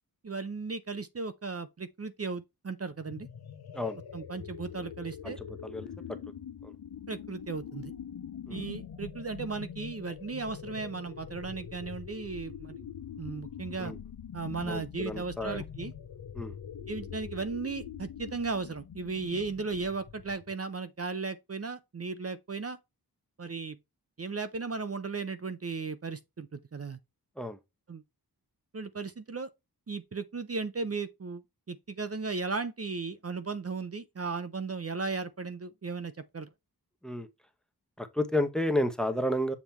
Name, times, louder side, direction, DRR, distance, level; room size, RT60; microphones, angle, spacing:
voice 1, 0.2-3.3 4.1-5.4 7.1-7.9 8.5-12.8 13.2-13.9 14.3-15.9 16.9-22.8 23.4-23.8 24.2-27.0 27.9-28.0 28.7-29.5 29.9-31.4 31.7-36.5, right 4 dB, 40° right, 0.6 m, -36 dB
sound 1, 3.0-20.5, left 8 dB, 75° left, 0.7 m, -44 dB
voice 2, 5.2-5.9 6.6-6.7 8.5-8.7 13.8-14.0 14.7-15.6 16.3-16.5 27.4-27.6 37.0-37.3 38.0-39.5, left 1 dB, ahead, 1.0 m, -31 dB
7.3 x 3.3 x 4.4 m
wide cardioid pair, 90°, 38 cm